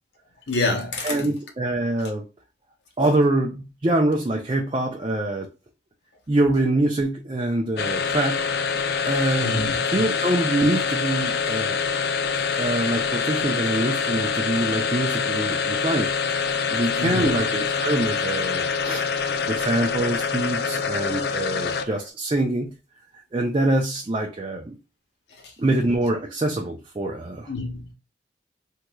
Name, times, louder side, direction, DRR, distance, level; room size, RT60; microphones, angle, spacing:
voice 1, 0.5-1.2 9.4-9.8 17.0-17.5 19.3-19.4 25.4-25.5 27.5-27.9, left 2 dB, 80° left, 0.9 m, -27 dB
voice 2, 1.0-2.3 3.0-5.5 6.3-8.4 9.1-9.5 9.9-11.8 12.6-16.1 16.7-19.0 19.5-22.7 23.3-24.8 25.6-27.5, right 1 dB, 30° right, 0.4 m, -24 dB
sound 1, 7.8-22.1, left 5 dB, 65° left, 0.4 m, -25 dB
3.7 x 3.0 x 2.2 m
head